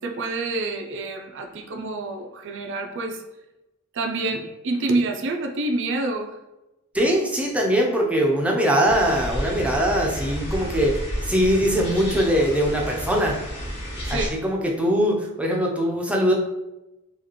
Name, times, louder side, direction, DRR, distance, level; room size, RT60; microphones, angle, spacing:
voice 1, 0.0-3.2 3.9-6.4 14.0-14.3, right 2 dB, 55° right, 4 dB, 0.5 m, -27 dB
voice 2, 6.9-10.9 11.3-13.3 14.1-16.3, equal, 5° right, -1 dB, 0.6 m, -21 dB
sound 1, 8.8-14.3, equal, 25° left, 1.3 m, -31 dB
4.9 x 2.4 x 3.0 m, 0.96 s
head